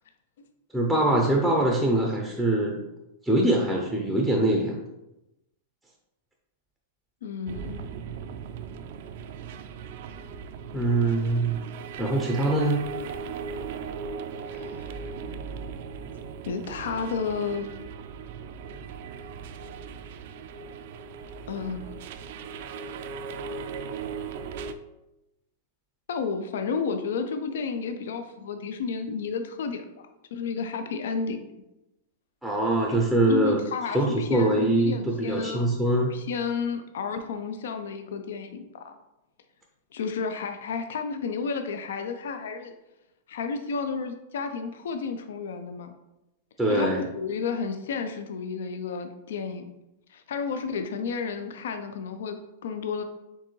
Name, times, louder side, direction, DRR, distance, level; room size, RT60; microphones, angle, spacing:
voice 1, 0.7-2.8 3.2-4.8 10.7-11.6 12.0-12.8 32.4-33.6 33.9-36.1 46.6-47.1, right 1 dB, ahead, -1 dB, 0.5 m, -23 dB
voice 2, 7.2-7.8 14.5-15.0 16.5-17.7 21.4-21.9 26.1-31.5 33.3-35.7 36.1-38.9 39.9-42.7 43.3-45.9 46.7-49.7 50.1-53.0, left 5 dB, 80° left, 7 dB, 0.4 m, -32 dB
sound 1, 7.5-24.7, right 5 dB, 55° right, 0.3 m, -38 dB
4.5 x 3.7 x 3.1 m, 0.93 s
supercardioid pair, 155°, 0 cm